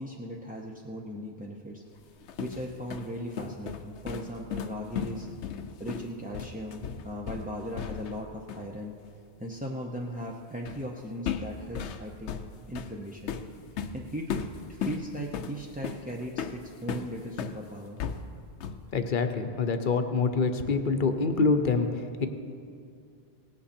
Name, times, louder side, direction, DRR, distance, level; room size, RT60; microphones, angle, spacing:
voice 1, 0.0-1.8 2.4-5.3 5.8-9.0 9.4-12.4 12.7-13.4 13.9-14.4 14.7-18.0, equal, 10° right, -2 dB, 0.5 m, -38 dB
sound 1, 2.0-8.2 8.5-8.7 10.6-10.9 11.2-17.6 18.0-18.9, left 7 dB, 75° left, 0.9 m, -36 dB
voice 2, 18.9-22.3, left 4 dB, 50° left, 7 dB, 0.8 m, -26 dB
18.0 x 8.6 x 4.3 m, 2.4 s
omnidirectional pair, 1.2 m